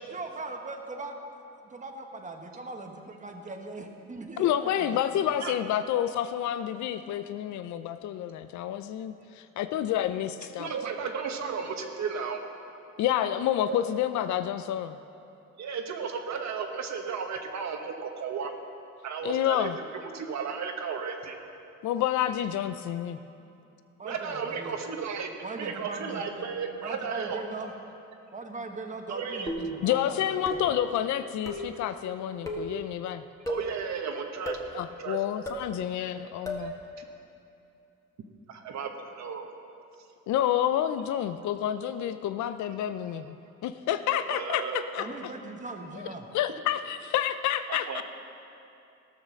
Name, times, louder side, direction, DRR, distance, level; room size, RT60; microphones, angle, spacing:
voice 1, 0.1-1.2 1.6-5.3 24.0-24.8 25.4-26.2 26.8-27.7 28.3-30.7 45.0-46.3, right 3 dB, 25° right, 3 dB, 1.3 m, -40 dB
voice 2, 4.4-10.7 13.0-15.0 19.2-19.8 21.8-23.2 29.8-33.2 34.7-36.7 40.3-43.4 43.6-45.3 46.0-46.1 46.3-48.0, left 11 dB, 70° left, 11 dB, 0.5 m, -29 dB
voice 3, 10.6-12.4 13.7-14.0 15.6-18.5 19.0-19.7 20.0-21.4 24.0-27.4 29.1-29.5 33.5-34.6 35.0-35.2 36.2-36.3 36.6-36.7 37.0-37.1 38.5-39.5 44.3-44.8 47.7-48.0, right 6 dB, 65° right, 4 dB, 1.3 m, -34 dB
sound 1, 29.5-29.9 30.5-30.9 31.5-31.8 32.5-32.8 33.5-33.8 34.5-34.7 35.5-35.7 36.5-36.7, equal, 10° left, 1.7 m, -34 dB
16.0 x 6.5 x 6.4 m, 2.7 s
cardioid pair, 90°, 30 cm